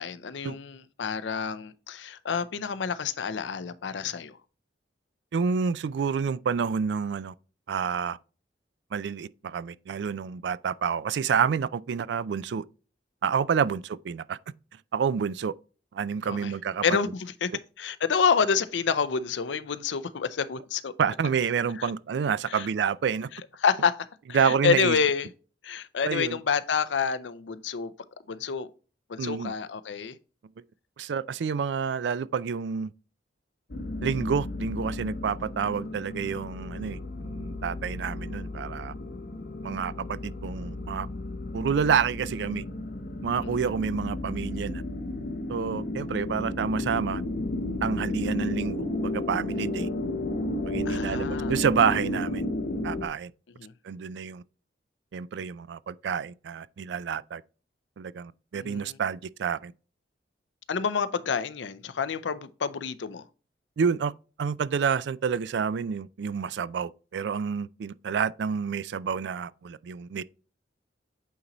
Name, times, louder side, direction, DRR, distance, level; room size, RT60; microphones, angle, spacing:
voice 1, 0.0-4.4 16.2-16.5 16.8-17.5 17.8-20.9 21.8-21.9 22.5-22.7 23.6-23.9 24.3-25.3 25.6-27.9 28.3-28.7 29.1-30.2 43.4-43.7 50.9-51.5 53.6-53.7 58.5-58.9 60.7-63.2, left 6 dB, 85° left, 0.5 m, -28 dB
voice 2, 5.3-7.3 7.7-8.2 8.9-12.6 13.2-14.4 14.9-15.5 15.9-16.8 21.0-23.3 24.3-25.0 26.1-26.4 29.2-29.5 31.0-32.9 34.0-38.9 39.6-41.1 41.5-42.6 43.2-44.8 45.5-47.2 47.8-49.9 50.7-52.5 52.8-53.3 53.8-54.4 55.1-57.4 58.0-59.7 63.8-64.1 64.4-70.2, right 6 dB, 70° right, 0.3 m, -28 dB
sound 1, 33.7-53.1, left 1 dB, 55° left, 0.8 m, -33 dB
8.4 x 4.0 x 3.0 m
head